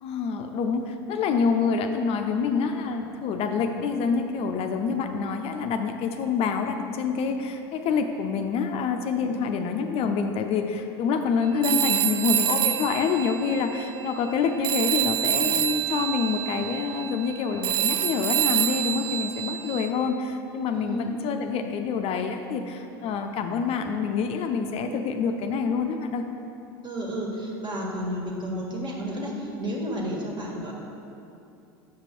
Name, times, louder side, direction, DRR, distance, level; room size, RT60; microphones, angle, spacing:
voice 1, 0.0-26.2, left 5 dB, 50° left, 6 dB, 0.5 m, -27 dB
Telephone, 11.6-14.4 14.6-19.9, right 11 dB, 70° right, 0.5 m, -27 dB
voice 2, 20.7-21.1 26.8-30.7, equal, 35° right, -1 dB, 1.6 m, -31 dB
6.8 x 5.1 x 4.5 m, 2.7 s
hypercardioid pair, 85°, 13 cm